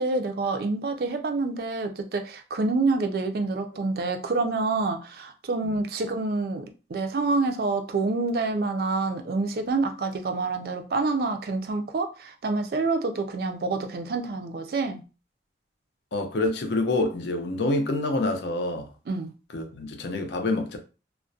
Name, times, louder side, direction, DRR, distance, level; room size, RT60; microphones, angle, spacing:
voice 1, 0.0-15.0 19.1-19.3, right 3 dB, 55° right, 0.3 m, -27 dB
voice 2, 16.1-18.9 19.5-20.8, left 2 dB, 70° left, 0.5 m, -27 dB
2.3 x 2.1 x 2.6 m
head